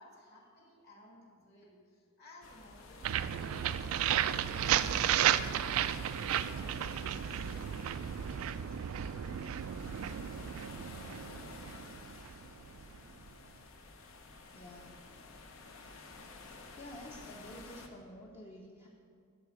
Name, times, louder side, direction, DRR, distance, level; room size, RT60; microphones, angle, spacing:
voice 1, 0.0-3.9 4.2-7.5, left 1 dB, 50° left, -2 dB, 2.3 m, -57 dB
sound 1, 2.4-17.9, left 3 dB, 70° left, 0.9 m, -51 dB
sound 2, 3.0-12.8, right 10 dB, 75° right, 0.3 m, -33 dB
voice 2, 14.5-15.1 16.4-18.9, left 1 dB, 30° left, -2 dB, 0.8 m, -50 dB
11.0 x 4.8 x 7.1 m, 2.2 s
head